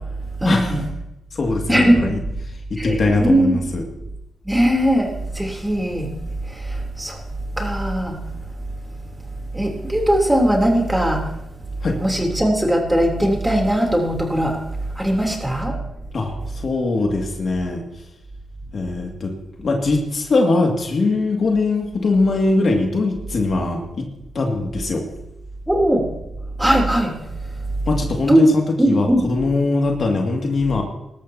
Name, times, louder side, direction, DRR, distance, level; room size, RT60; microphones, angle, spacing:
voice 1, 0.4-0.8 1.7-2.1 2.8-3.6 4.4-6.1 6.5-7.2 7.6-8.2 9.5-11.3 12.0-14.6 15.0-15.8 25.7-26.0 26.6-27.1 28.3-28.4 28.8-29.2, right 1 dB, 10° right, 1 dB, 3.2 m, -19 dB
voice 2, 1.3-2.2 2.7-3.8 11.8-12.0 16.1-17.8 18.7-24.1 24.3-25.0 27.9-30.8, left 3 dB, 55° left, 1 dB, 2.2 m, -21 dB
18.5 x 13.0 x 2.8 m, 0.87 s
cardioid pair, 60°, 0 cm